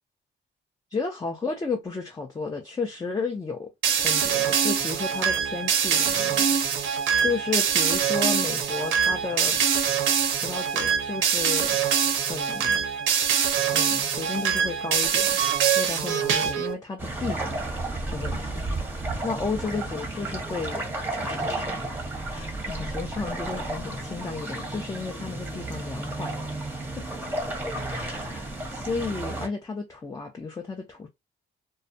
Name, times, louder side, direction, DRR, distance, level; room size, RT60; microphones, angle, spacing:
voice 1, 0.9-3.7 4.0-6.8 7.1-9.6 10.4-11.8 12.2-12.9 13.7-15.4 15.8-17.6 18.1-18.5 19.2-20.8 21.2-21.9 22.3-26.7 27.0-27.1 27.9-31.1, left 4 dB, 20° left, 0.5 m, -33 dB
sound 1, 3.8-16.7, right 7 dB, 75° right, 0.6 m, -24 dB
sound 2, 17.0-29.5, right 2 dB, 10° right, 0.8 m, -32 dB
2.3 x 2.1 x 2.6 m
cardioid pair, 90°, 20 cm